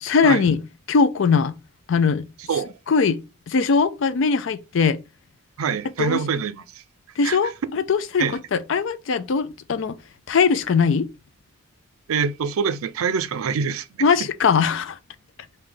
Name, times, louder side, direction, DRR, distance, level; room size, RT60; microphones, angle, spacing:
voice 1, 0.0-0.6 0.9-1.6 1.9-2.3 2.9-3.2 3.5-5.0 6.0-6.2 7.2-10.0 10.3-11.1 14.0-15.0, left 5 dB, 65° left, 0.4 m, -20 dB
voice 2, 5.6-6.8 7.2-7.4 8.2-8.4 12.1-13.9, right 6 dB, 90° right, 0.4 m, -25 dB
3.4 x 2.7 x 3.8 m
head